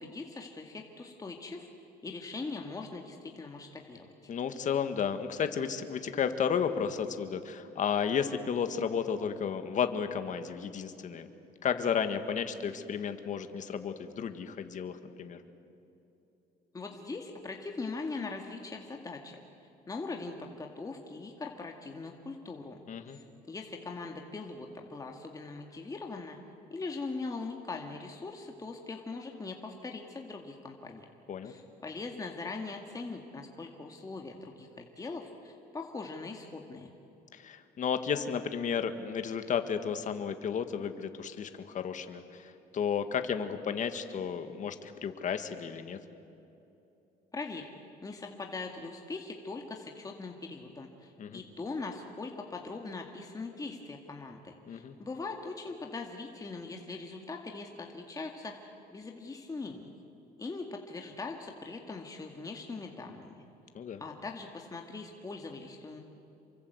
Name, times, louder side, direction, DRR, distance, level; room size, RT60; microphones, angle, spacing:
voice 1, 0.0-1.7 2.0-4.1 16.7-19.4 19.9-22.8 23.1-26.4 26.7-31.1 31.4-36.9 47.3-47.7 48.0-59.9 60.4-63.4 64.0-66.0, left 3 dB, 20° left, 2 dB, 2.1 m, -41 dB
voice 2, 4.3-11.3 11.6-15.4 22.9-23.2 31.3-31.5 37.3-46.0 51.2-51.4 54.7-54.9 63.7-64.0, left 7 dB, 50° left, 8 dB, 1.9 m, -33 dB
28.0 x 24.0 x 8.1 m, 2.9 s
cardioid pair, 110°, 17 cm